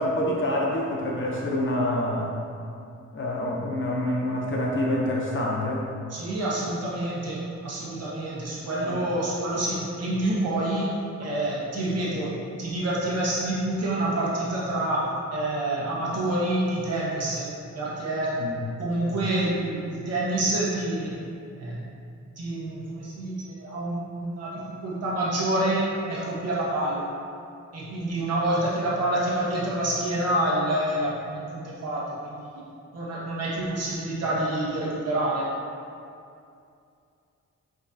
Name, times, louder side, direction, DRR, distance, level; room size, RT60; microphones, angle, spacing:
voice 1, 0.0-2.3 3.1-5.9 8.8-9.0 18.4-18.6 19.0-19.1, left 1 dB, 40° left, -3 dB, 0.7 m, -27 dB
voice 2, 6.1-10.9 11.2-15.0 15.3-17.5 17.7-18.3 18.8-21.1 21.6-21.8 22.4-25.8 26.1-27.0 27.7-32.4 32.9-35.5, right 1 dB, 55° right, -7 dB, 1.3 m, -27 dB
7.9 x 5.2 x 2.8 m, 2.5 s
wide cardioid pair, 180°, 29 cm